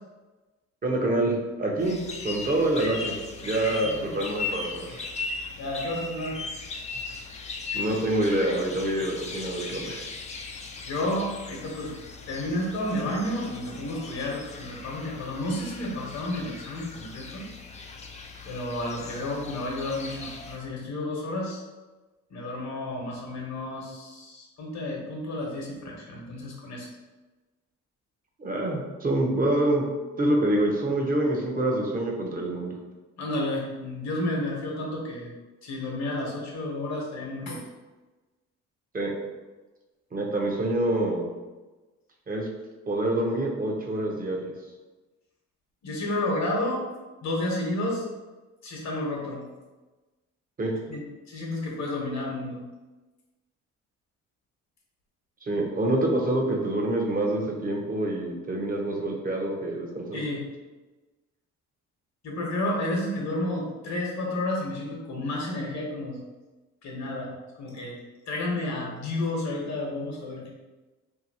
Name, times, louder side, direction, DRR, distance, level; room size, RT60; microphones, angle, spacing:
voice 1, 0.8-5.0 7.7-10.1 28.4-29.8 30.2-32.7 38.9-39.1 40.1-41.2 42.3-42.5 42.9-44.5 50.6-50.7 55.4-60.2, right 1 dB, 30° right, 0 dB, 0.7 m, -26 dB
sound 1, 1.8-20.6, left 4 dB, 25° left, 0.3 m, -38 dB
voice 2, 3.8-4.2 5.6-6.4 10.9-12.0 12.3-17.5 18.4-21.6 22.3-26.9 33.2-35.3 35.6-37.6 45.8-46.8 47.2-48.1 48.6-49.5 50.9-52.6 60.1-60.5 62.2-66.2 66.8-68.0 68.3-70.5, left 1 dB, 65° left, -2 dB, 1.0 m, -31 dB
2.8 x 2.7 x 2.7 m, 1.2 s
cardioid pair, 90°, 30 cm